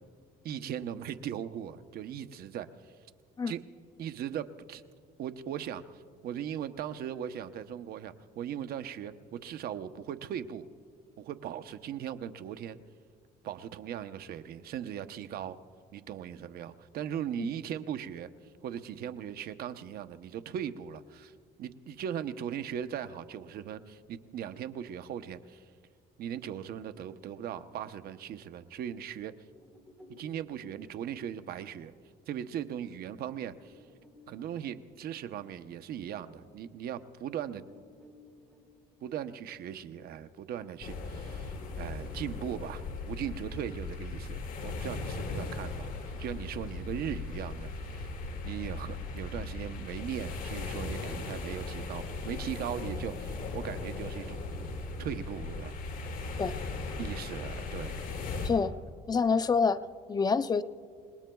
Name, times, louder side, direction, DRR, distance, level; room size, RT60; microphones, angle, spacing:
voice 1, 0.4-2.9 3.5-3.6 4.0-4.8 5.2-10.7 11.2-12.8 13.4-15.6 15.9-18.3 18.6-21.3 21.6-25.6 26.2-29.3 30.2-31.9 32.3-33.8 34.3-37.6 39.0-45.9 46.2-48.1 48.4-54.4 55.0-55.7 57.0-58.1, right 9 dB, 65° right, 11 dB, 0.8 m, -39 dB
sound 1, 29.5-36.6 37.0-37.1 37.5-41.1 41.5-44.6, left 2 dB, 5° left, 4.2 m, -58 dB
sound 2, 40.8-58.5, left 3 dB, 55° left, 3.4 m, -38 dB
voice 2, 58.4-58.7 59.1-59.8 60.1-60.6, left 5 dB, 25° left, 11 dB, 0.5 m, -26 dB
29.5 x 19.5 x 2.3 m, 2.2 s
cardioid pair, 110°, 17 cm